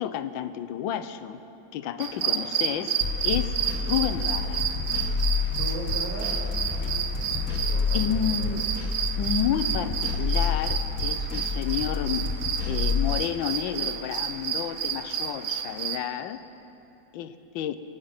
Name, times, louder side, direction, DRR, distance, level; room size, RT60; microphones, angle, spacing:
voice 1, 0.0-1.4 1.7-3.0 3.2-3.5 3.8-4.6 6.8-6.9 7.9-8.6 9.2-12.3 12.7-16.4 17.1-17.8, left 9 dB, 80° left, 11 dB, 1.4 m, -30 dB
sound 1, 2.0-16.0, right 8 dB, 85° right, 1.6 m, -31 dB
sound 2, 3.0-13.2, left 4 dB, 50° left, 1.7 m, -29 dB
voice 2, 5.5-6.4 6.7-8.6, right 1 dB, 65° right, -6 dB, 4.5 m, -39 dB
23.0 x 9.5 x 5.9 m, 2.9 s
omnidirectional pair, 2.1 m